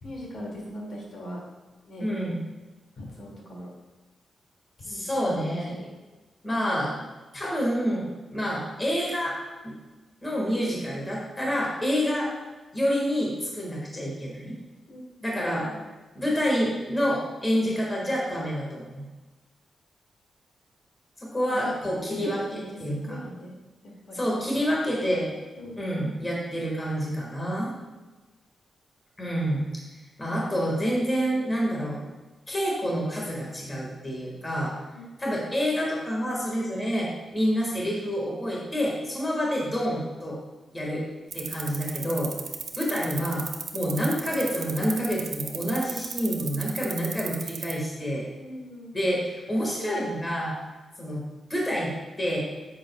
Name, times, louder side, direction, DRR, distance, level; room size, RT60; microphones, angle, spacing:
voice 1, 0.0-1.4 1.9-2.1 3.0-3.7 4.8-5.1 5.3-5.8 14.9-15.3 15.6-15.8 21.5-22.1 22.3-22.4 22.9-23.5 24.0-24.2 25.6-26.1 27.9-28.0 34.9-35.1 48.4-49.0, equal, 65° left, -2 dB, 2.2 m, -40 dB
voice 2, 2.0-2.4 4.8-5.8 6.4-6.9 7.3-9.3 9.6-9.7 10.2-12.3 12.7-14.6 15.2-15.7 16.1-19.0 21.2-23.2 24.1-25.3 25.8-27.7 29.2-29.7 30.2-32.0 32.5-34.7 35.2-40.4 40.7-41.0 41.3-42.3 42.8-43.4 43.7-48.2 48.9-50.5 51.0-51.2 51.5-51.9 52.2-52.4, equal, 15° left, -3 dB, 1.7 m, -28 dB
sound 1, 41.3-47.8, right 6 dB, 65° right, 0.6 m, -34 dB
9.2 x 7.5 x 2.3 m, 1.2 s
wide cardioid pair, 135°, 0 cm